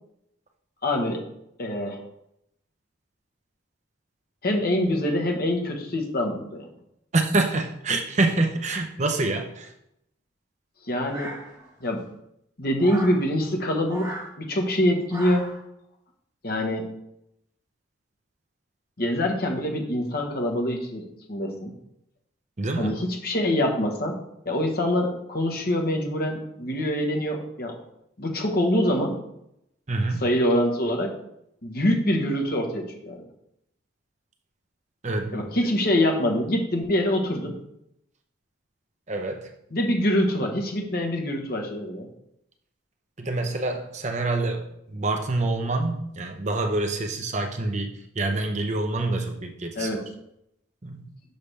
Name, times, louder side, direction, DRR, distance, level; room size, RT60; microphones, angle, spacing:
voice 1, 0.8-1.2 1.6-2.0 4.4-6.7 10.8-11.3 11.8-12.0 12.6-15.5 16.4-16.9 19.0-21.7 22.8-24.2 24.4-27.8 28.2-29.2 30.2-31.1 31.6-33.3 35.3-37.6 39.7-42.1 49.8-50.0, left 1 dB, 50° left, 2 dB, 1.2 m, -25 dB
voice 2, 7.1-9.7 22.6-22.9 29.9-30.2 35.0-35.5 39.1-39.5 43.2-49.9 50.8-51.0, right 2 dB, 35° right, 4 dB, 0.7 m, -26 dB
sound 1, 11.1-11.8 12.8-13.2 13.9-14.3 15.1-15.6, right 1 dB, 15° right, 1.6 m, -37 dB
6.7 x 5.7 x 3.4 m, 0.79 s
head